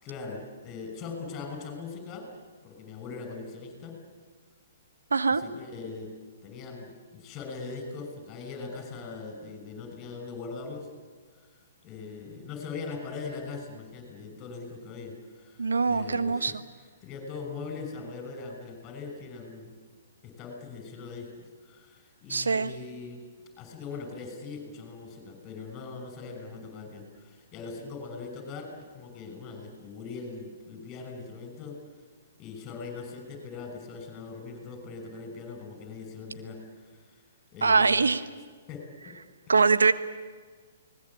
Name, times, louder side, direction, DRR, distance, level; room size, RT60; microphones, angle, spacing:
voice 1, 0.0-2.3 2.6-4.0 5.3-6.1 6.4-10.9 11.8-16.6 17.0-19.7 20.2-21.3 21.6-23.2 23.6-31.8 32.4-37.2 37.5-38.2 38.7-39.2 39.5-39.7, left 4 dB, 25° left, 5 dB, 6.1 m, -41 dB
voice 2, 5.1-5.4 15.6-16.6 22.3-22.7 37.6-38.2 39.5-39.9, right 4 dB, 85° right, 11 dB, 1.5 m, -23 dB
29.5 x 19.5 x 8.7 m, 1.5 s
hypercardioid pair, 125°, 0 cm